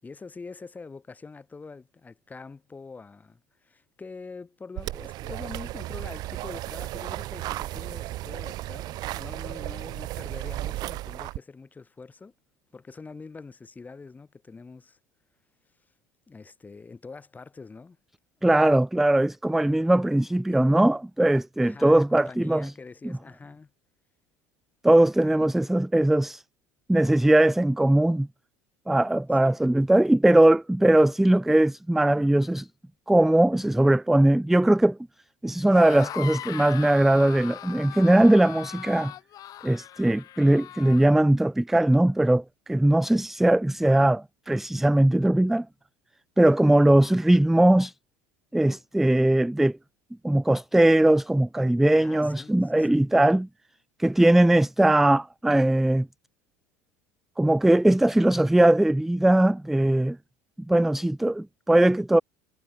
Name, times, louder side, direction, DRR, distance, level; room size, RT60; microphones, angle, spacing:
voice 1, 0.0-12.3 12.7-15.0 16.3-18.0 19.6-20.1 20.5-20.7 21.6-23.7 25.2-25.3 29.4-29.6 52.0-53.0 61.3-61.4, left 4 dB, 20° left, 4.6 m, -44 dB
sound 1, 4.8-11.4, right 17 dB, 60° right, 1.2 m, -34 dB
voice 2, 18.4-22.7 24.8-26.4 26.9-28.3 28.9-32.7 33.1-35.0 35.4-39.1 39.6-45.7 46.4-47.9 48.5-49.8 50.2-53.5 54.0-56.1 57.4-60.2 60.7-62.2, right 1 dB, 5° right, 0.3 m, -20 dB
sound 2, 35.6-41.1, left 13 dB, 50° left, 3.5 m, -40 dB
hypercardioid pair, 85°, 8 cm